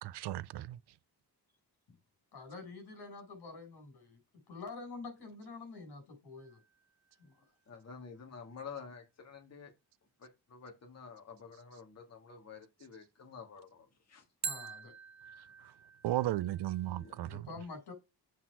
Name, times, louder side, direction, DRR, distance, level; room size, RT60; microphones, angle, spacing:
voice 1, 0.0-0.8 16.0-17.4, right 14 dB, 90° right, 0.5 m, -35 dB
voice 2, 2.3-4.2 4.5-6.6 7.2-7.4 14.4-14.9 17.2-17.9, left 3 dB, 75° left, 4.4 m, -47 dB
sound 1, 6.4-7.4 14.4-17.4, right 6 dB, 45° right, 0.7 m, -46 dB
voice 3, 7.7-9.7 10.2-14.2 16.8-17.2, left 5 dB, 40° left, 1.8 m, -50 dB
7.4 x 4.2 x 4.5 m
wide cardioid pair, 170°, 39 cm